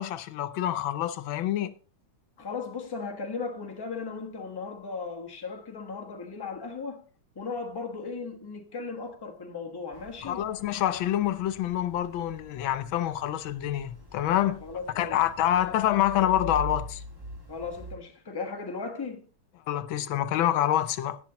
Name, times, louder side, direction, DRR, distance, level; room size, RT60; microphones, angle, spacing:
voice 1, 0.0-1.7 10.2-14.6 15.0-17.0 19.7-21.2, left 12 dB, 80° left, 1.4 m, -27 dB
voice 2, 2.4-7.0 7.3-10.5 14.6-15.2 17.5-19.3, left 4 dB, 15° left, 1.0 m, -36 dB
sound 1, 9.9-18.0, left 1 dB, 10° right, 1.5 m, -44 dB
14.0 x 9.3 x 2.9 m
omnidirectional pair, 2.1 m